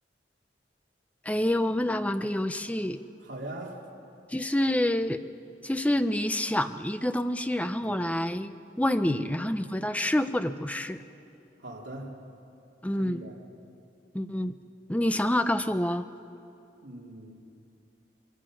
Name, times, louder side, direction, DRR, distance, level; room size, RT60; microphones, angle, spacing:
voice 1, 1.2-3.0 4.3-5.2 5.6-11.0 12.8-13.2 14.1-14.6 14.9-16.1, left 1 dB, 5° left, 10 dB, 0.5 m, -27 dB
voice 2, 3.2-3.9 7.8-8.0 9.0-9.3 11.6-12.1 12.9-13.4 16.8-17.3, right 1 dB, 70° right, -3 dB, 2.9 m, -40 dB
24.0 x 22.0 x 6.2 m, 2.7 s
head